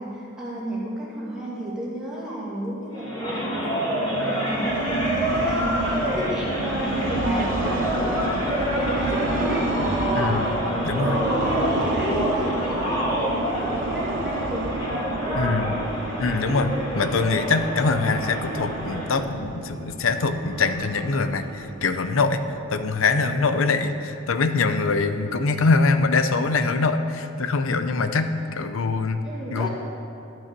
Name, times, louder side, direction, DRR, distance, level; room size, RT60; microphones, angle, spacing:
voice 1, 0.0-9.7 10.0-10.5 10.9-14.7 15.2-15.5 23.3-23.6 29.2-29.7, right 1 dB, 5° right, -8 dB, 2.4 m, -33 dB
sound 1, 2.9-19.2, equal, 20° left, 2.9 m, -27 dB
sound 2, 4.3-23.0, right 2 dB, 60° right, 0.7 m, -31 dB
voice 2, 10.1-10.5 10.8-11.2 15.3-15.7 16.2-29.2 29.5-29.7, left 4 dB, 70° left, 9 dB, 0.6 m, -23 dB
12.0 x 6.2 x 6.7 m, 2.7 s
head